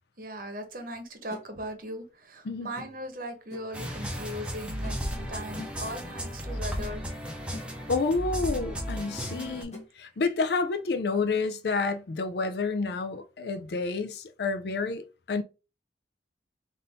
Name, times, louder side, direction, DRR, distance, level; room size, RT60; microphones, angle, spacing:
voice 1, 0.2-7.0 9.3-9.7, equal, 50° right, 0.9 m, -39 dB
sound 1, 1.3-1.5 2.7-3.1 3.5-3.8 4.8-5.2 5.6-5.9 6.8-6.9 7.3-7.7 8.9-9.0 9.7-9.9, left 2 dB, 35° left, 1.2 m, -44 dB
sound 2, 3.7-9.6, equal, 5° right, 0.7 m, -35 dB
voice 2, 7.9-15.4, left 4 dB, 60° left, 0.5 m, -29 dB
3.7 x 2.6 x 4.0 m
head